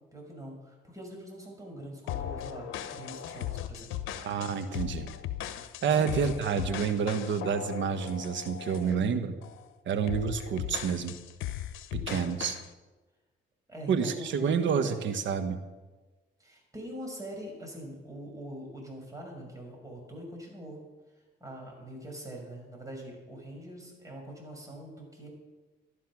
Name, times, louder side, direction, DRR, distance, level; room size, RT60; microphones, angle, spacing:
voice 1, 0.1-3.9 5.9-6.2 11.9-12.3 13.7-15.0 16.4-20.8 21.4-25.3, equal, 15° right, 0 dB, 6.0 m, -43 dB
sound 1, 2.1-9.0 9.4-9.7 10.1-12.7, left 11 dB, 85° left, 0.8 m, -38 dB
voice 2, 4.2-5.1 5.8-9.3 9.8-11.1 12.1-12.5 13.9-15.6, right 6 dB, 70° right, 8 dB, 1.4 m, -29 dB
14.0 x 11.5 x 6.2 m, 1.2 s
cardioid pair, 90°, 20 cm